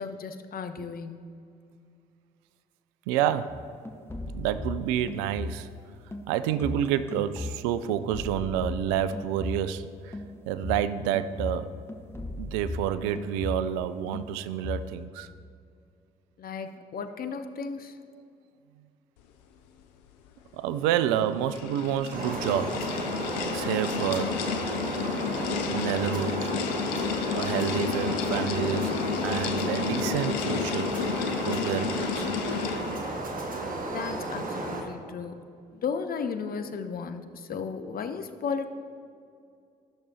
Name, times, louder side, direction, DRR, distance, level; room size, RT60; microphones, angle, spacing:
voice 1, 0.0-1.3 16.4-18.0 33.9-35.3 35.7-38.7, left 5 dB, 45° left, 9 dB, 0.7 m, -34 dB
voice 2, 3.1-3.6 4.3-5.7 6.3-10.2 10.5-11.7 12.4-15.3 20.5-22.9 23.5-24.4 25.7-26.5 27.3-29.0 29.2-31.0 31.5-32.3, right 10 dB, 75° right, 13 dB, 0.4 m, -29 dB
sound 1, 3.5-5.8 6.1-9.8 10.1-13.9 14.1-14.9, left 2 dB, 10° left, 1.0 m, -37 dB
sound 2, 21.0-33.2, left 8 dB, 80° left, 0.4 m, -31 dB
sound 3, 22.1-34.8, right 2 dB, 40° right, 1.3 m, -33 dB
14.0 x 6.7 x 2.8 m, 2.4 s
hypercardioid pair, 45°, 21 cm